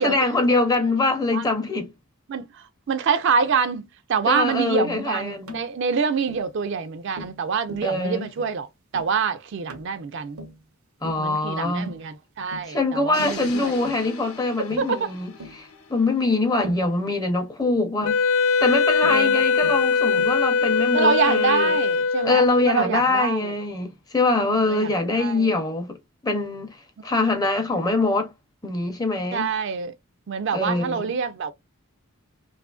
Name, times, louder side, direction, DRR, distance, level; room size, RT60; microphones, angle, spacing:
voice 1, 0.0-1.9 4.2-5.6 7.8-8.2 11.0-12.0 12.7-18.2 18.6-21.8 22.2-26.0 26.2-28.3 28.6-29.5 30.5-31.1, left 2 dB, 20° left, 0.5 m, -24 dB
voice 2, 2.9-8.7 8.9-10.4 11.2-13.7 14.8-15.1 19.1-19.4 20.9-23.5 24.3-24.9 25.2-25.5 29.3-29.9 30.3-31.5, right 6 dB, 55° right, 0.4 m, -26 dB
Tap, 5.5-5.7 6.3-6.5 7.2-7.4 7.7-7.9 8.4-8.6 8.9-9.2 9.7-9.9 10.4-10.6 11.0-11.3 11.9-12.1 12.5-12.8 13.2-13.4 13.8-14.0 14.7-15.0 15.4-15.6 16.6-16.9 18.0-18.2 19.0-19.3 19.6-19.9 20.2-20.4, equal, 90° right, 0.7 m, -40 dB
sound 1, 13.1-17.2, left 4 dB, 90° left, 0.7 m, -42 dB
Wind instrument woodwind instrument, 18.0-22.6, left 5 dB, 70° left, 0.4 m, -21 dB
2.7 x 2.4 x 2.3 m
head